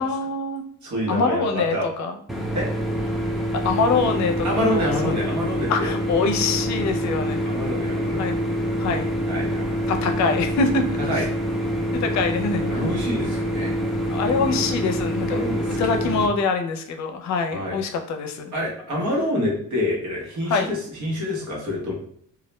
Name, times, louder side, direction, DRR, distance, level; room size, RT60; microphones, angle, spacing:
voice 1, 0.0-0.6 1.1-2.1 3.6-5.3 5.7-7.5 8.2-8.4 8.8-9.1 9.9-10.8 11.9-13.0 13.7-15.4 15.8-18.5 20.5-20.7, left 4 dB, 65° left, 5 dB, 0.5 m, -25 dB
voice 2, 0.8-1.9 2.5-2.7 4.4-5.9 7.3-8.3 9.3-9.9 11.1-11.3 12.7-13.7 14.3-14.6 15.2-16.2 17.5-17.8 18.5-21.9, left 1 dB, 70° right, -2 dB, 1.0 m, -27 dB
sound 1, 2.3-16.3, equal, ahead, 0.4 m, -26 dB
2.3 x 2.1 x 3.1 m, 0.63 s
cardioid pair, 90°, 30 cm